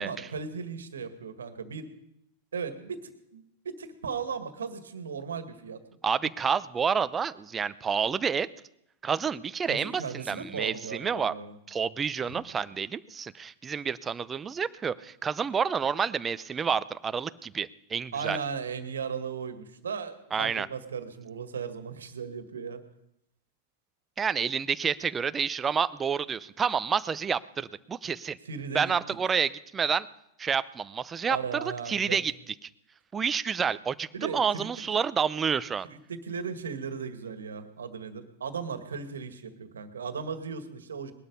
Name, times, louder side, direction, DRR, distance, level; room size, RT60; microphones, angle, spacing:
voice 1, 0.0-1.9 2.5-5.8 9.7-11.6 12.3-12.4 18.1-22.8 28.4-28.9 31.2-32.2 34.1-34.7 35.9-41.1, right 6 dB, 85° right, 9 dB, 1.9 m, -36 dB
voice 2, 6.0-8.5 9.0-11.3 11.7-18.4 20.3-20.7 24.2-28.4 28.7-30.1 30.4-32.3 33.1-35.9, right 6 dB, 20° right, 15 dB, 0.8 m, -29 dB
20.5 x 12.5 x 5.4 m, 0.80 s
hypercardioid pair, 100°, 0 cm